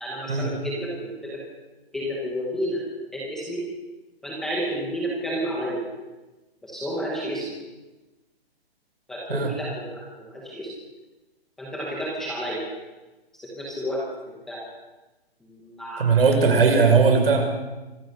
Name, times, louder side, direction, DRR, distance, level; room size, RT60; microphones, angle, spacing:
voice 1, 0.0-1.4 1.9-2.8 3.1-3.6 4.2-5.8 6.6-7.4 9.1-10.7 11.6-12.6 13.3-14.0 14.5-14.6 15.6-16.1, equal, ahead, -4 dB, 0.9 m, -30 dB
voice 2, 16.0-17.4, right 5 dB, 65° right, 4 dB, 5.8 m, -18 dB
24.5 x 18.0 x 6.6 m, 1.1 s
hypercardioid pair, 180°, 31 cm